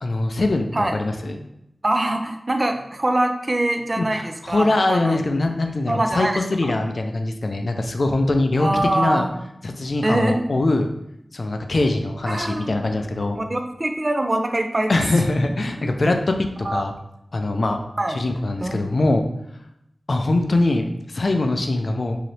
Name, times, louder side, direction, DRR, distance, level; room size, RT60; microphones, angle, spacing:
voice 1, 0.0-1.4 4.0-9.3 9.6-10.9 11.3-13.4 14.9-16.2 16.6-16.9 17.3-17.8 18.1-19.2 20.1-22.2, left 2 dB, 65° left, 5 dB, 0.4 m, -22 dB
voice 2, 1.8-5.2 5.9-6.7 8.6-9.3 10.0-10.4 12.3-12.9 13.3-15.0 15.8-15.9 16.6-16.8 18.0-18.2 18.6-18.8, right 1 dB, 40° right, 5 dB, 0.5 m, -23 dB
4.0 x 2.7 x 3.2 m, 0.80 s
wide cardioid pair, 55°, 0 cm